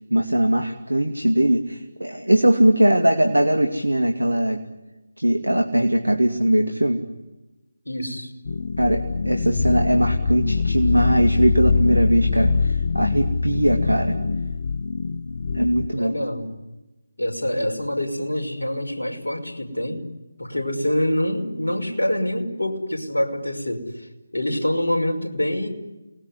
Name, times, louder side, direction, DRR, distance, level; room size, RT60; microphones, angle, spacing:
voice 1, 0.1-4.6 5.2-7.0 8.8-14.2 15.5-16.1, right 1 dB, 80° right, 5 dB, 2.4 m, -20 dB
voice 2, 7.9-8.3 16.0-16.5 17.2-20.0 20.4-24.1 24.3-25.7, left 1 dB, 70° left, 2 dB, 5.8 m, -25 dB
sound 1, 8.4-15.9, left 4 dB, 45° left, 1.3 m, -23 dB
29.0 x 20.5 x 10.0 m, 1.1 s
figure-of-eight pair, 155°, 0 cm